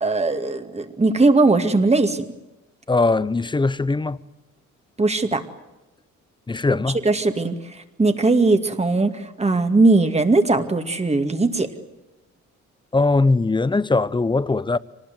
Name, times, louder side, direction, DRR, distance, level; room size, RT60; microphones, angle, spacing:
voice 1, 0.0-2.2 5.0-5.4 7.0-11.7, right 3 dB, 20° right, 2.3 m, -19 dB
voice 2, 2.9-4.2 6.5-7.0 12.9-14.8, left 3 dB, 15° left, 0.8 m, -20 dB
25.0 x 19.5 x 9.4 m
cardioid pair, 90°, 30 cm